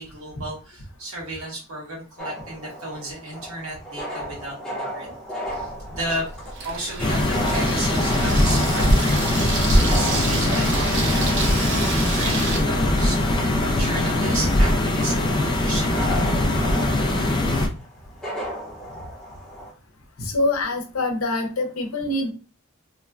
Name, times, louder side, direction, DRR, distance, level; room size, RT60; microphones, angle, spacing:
voice 1, 0.0-5.1 5.5-6.3 6.6-16.5, right 1 dB, 70° right, -3 dB, 1.4 m, -34 dB
sound 1, 2.2-19.7, equal, 5° left, 0.7 m, -35 dB
Water tap faucet / Sink (filling or washing), 5.5-12.6, right 3 dB, 55° right, 0.6 m, -30 dB
sound 2, 7.0-17.7, left 1 dB, 20° left, 0.4 m, -21 dB
voice 2, 20.2-22.3, left 2 dB, 70° left, 4 dB, 0.7 m, -25 dB
3.1 x 2.2 x 2.3 m, 0.33 s
head